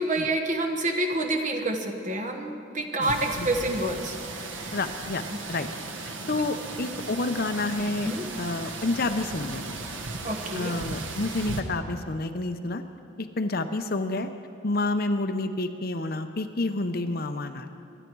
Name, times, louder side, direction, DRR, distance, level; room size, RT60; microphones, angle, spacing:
voice 1, 0.0-4.8 5.3-5.4 8.0-8.2 10.2-10.7, right 1 dB, 40° right, 3 dB, 1.4 m, -28 dB
sound 1, 3.0-11.6, right 3 dB, 65° right, 1.2 m, -36 dB
voice 2, 4.7-5.2 5.5-5.7 6.0-8.1 8.4-9.7 10.5-12.8 13.2-14.3 14.6-17.7, left 2 dB, 45° left, 8 dB, 0.7 m, -29 dB
25.0 x 11.0 x 4.7 m, 2.4 s
head